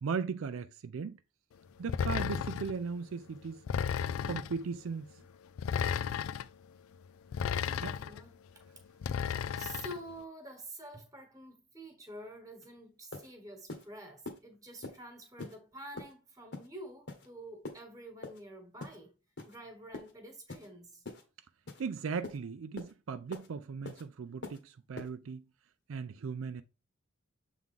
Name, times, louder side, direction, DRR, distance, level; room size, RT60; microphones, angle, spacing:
voice 1, 0.0-1.2 1.8-3.6 4.3-5.1 7.8-7.9 21.8-25.4 25.9-26.6, right 5 dB, 75° right, 0.4 m, -37 dB
sound 1, 1.9-2.8 3.7-4.6 5.6-6.5 7.3-8.2 9.0-10.0, left 7 dB, 80° left, 0.3 m, -33 dB
voice 2, 7.6-8.4 9.2-19.1 19.5-21.0, right 1 dB, 15° right, 1.4 m, -48 dB
sound 2, 12.6-12.7 13.1-13.3 13.7-13.9 14.2-14.4 14.8-15.0 15.4-15.6 16.0-16.1 16.5-16.7 17.1-17.3 17.6-17.8 18.2-18.4 18.8-19.0 19.4-19.6 19.9-20.1 20.5-20.7 21.0-21.2 21.7-21.8 22.2-22.4 22.8-22.9 23.3-23.5 23.8-24.0 24.4-24.6 25.0-25.1, left 3 dB, 55° left, 1.2 m, -43 dB
7.2 x 3.6 x 3.8 m
head